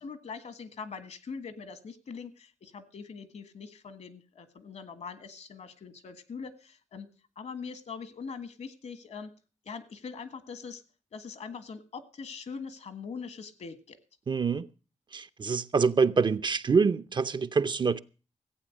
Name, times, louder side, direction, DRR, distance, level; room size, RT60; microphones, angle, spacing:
voice 1, 0.0-7.1 7.3-9.3 9.6-10.8 11.1-14.0, left 5 dB, 65° left, 1.6 m, -42 dB
voice 2, 14.3-14.7 15.1-18.0, right 5 dB, 40° right, 0.6 m, -25 dB
15.5 x 8.6 x 6.3 m
wide cardioid pair, 110°, 12 cm